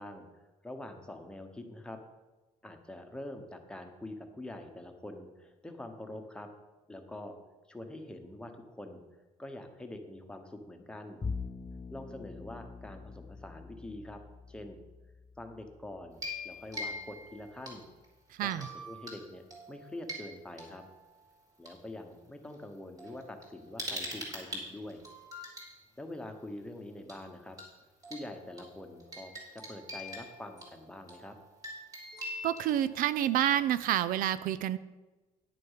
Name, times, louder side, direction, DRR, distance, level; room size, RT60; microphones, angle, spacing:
voice 1, 0.0-2.0 2.6-6.5 6.9-7.4 7.7-9.0 9.4-11.2 11.9-14.2 14.5-14.8 15.4-17.8 18.4-19.4 19.7-20.8 21.6-25.0 26.0-27.6 28.1-31.3, left 1 dB, 5° left, 4 dB, 1.1 m, -45 dB
Bowed string instrument, 11.2-17.6, left 4 dB, 25° left, 0.7 m, -44 dB
sound 1, 16.1-18.1 18.5-19.2 19.5-21.7 22.5-22.6 23.0-25.7 27.1-27.3 27.6-27.7 28.0-33.5, equal, 25° right, 3.1 m, -44 dB
voice 2, 32.4-34.8, right 11 dB, 80° right, 15 dB, 0.4 m, -28 dB
10.5 x 6.5 x 5.7 m, 1.2 s
cardioid pair, 135°, 14 cm